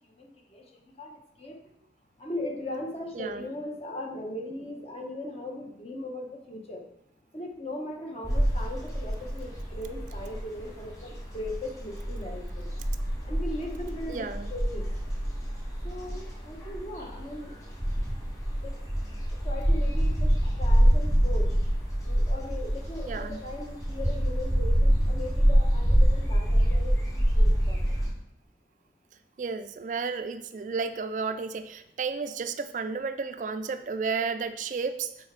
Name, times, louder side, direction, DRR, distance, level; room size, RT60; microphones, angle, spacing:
voice 1, 0.2-0.6 1.0-1.1 1.4-1.5 2.2-6.8 7.3-12.7 13.3-14.2 14.5-14.8 15.8-17.6 18.6-18.7 19.4-21.4 22.0-27.9, left 1 dB, 35° left, 2 dB, 1.2 m, -38 dB
voice 2, 3.1-3.5 14.1-14.5 23.1-23.4 29.4-35.1, right 5 dB, 45° right, 10 dB, 0.3 m, -32 dB
sound 1, 8.2-28.1, equal, 20° left, 3.2 m, -26 dB
7.3 x 5.0 x 4.7 m, 0.79 s
head